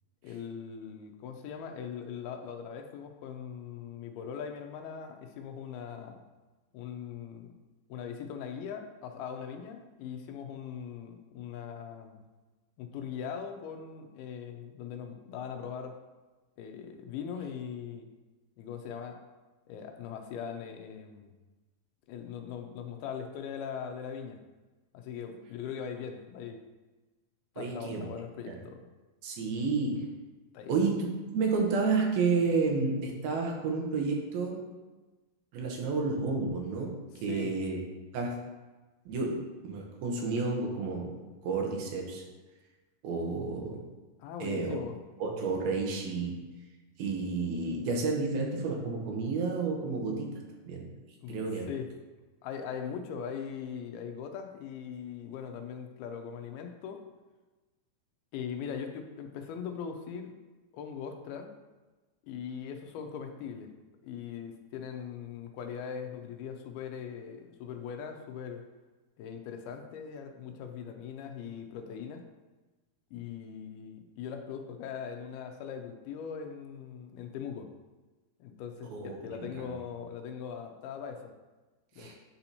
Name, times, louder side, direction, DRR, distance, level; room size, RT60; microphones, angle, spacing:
voice 1, 0.2-6.2 6.7-7.5 7.9-12.2 12.8-16.0 16.6-18.1 18.6-19.2 19.7-21.3 22.1-24.4 24.9-26.6 27.6-28.8 30.5-30.8 37.3-37.5 44.2-45.0 51.2-51.4 51.7-51.9 52.4-57.0 58.3-60.3 60.7-61.5 62.2-63.7 64.0-68.6 69.2-72.2 73.1-77.7 78.4-81.3 82.0-82.1, left 7 dB, 85° left, 5 dB, 2.5 m, -40 dB
voice 2, 27.6-28.1 28.5-28.6 29.2-30.1 30.7-31.1 31.3-34.7 35.5-37.8 38.1-38.4 39.1-42.2 43.0-43.9 44.4-44.8 45.2-46.5 47.0-50.9 51.3-51.7 78.9-79.2 82.0-82.2, right 4 dB, 80° right, 1 dB, 2.7 m, -31 dB
9.6 x 4.3 x 2.8 m, 1.2 s
omnidirectional pair, 4.4 m